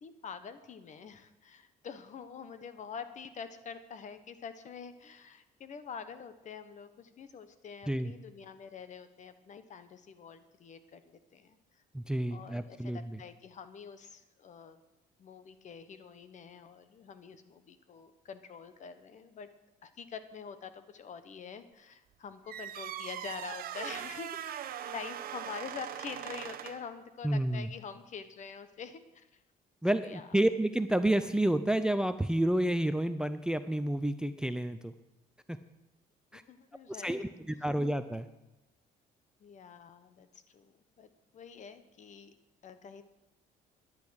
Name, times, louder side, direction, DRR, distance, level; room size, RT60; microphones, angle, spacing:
voice 1, 0.0-11.6 12.3-14.8 15.2-19.5 19.8-29.4 29.9-30.3 36.3-37.2 39.4-42.3 42.6-43.0, left 6 dB, 45° left, 11 dB, 1.2 m, -46 dB
voice 2, 11.9-13.2 27.2-27.7 29.8-34.9 35.5-35.6 36.3-36.4 36.9-38.3, right 1 dB, 5° right, 12 dB, 0.5 m, -30 dB
sound 1, 22.5-26.9, right 10 dB, 60° right, 0.8 m, -40 dB
12.0 x 10.5 x 6.4 m, 0.97 s
cardioid pair, 110°, 17 cm